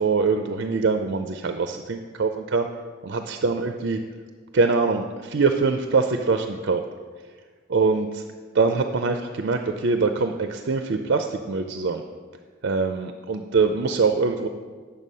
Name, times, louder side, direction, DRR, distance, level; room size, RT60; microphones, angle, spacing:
voice 1, 0.0-2.7 3.0-4.0 4.5-6.8 7.7-8.3 8.5-12.0 12.6-14.5, right 4 dB, 60° right, 6 dB, 0.5 m, -23 dB
9.2 x 6.8 x 5.4 m, 1.5 s
head